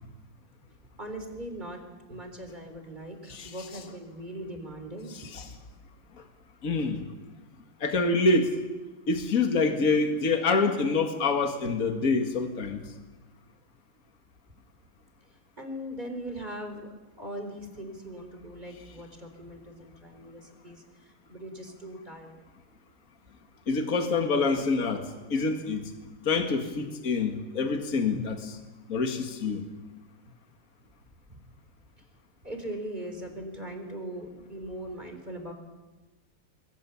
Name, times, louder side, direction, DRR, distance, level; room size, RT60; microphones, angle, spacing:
voice 1, 1.0-5.3 15.6-22.4 31.3-31.4 32.4-35.5, right 1 dB, 25° right, 5 dB, 4.0 m, -40 dB
voice 2, 6.6-7.0 7.8-8.6 9.1-12.8 23.7-25.9 26.3-28.6 28.9-29.6, left 3 dB, 50° left, 4 dB, 2.3 m, -26 dB
28.0 x 21.0 x 7.1 m, 1.2 s
omnidirectional pair, 2.0 m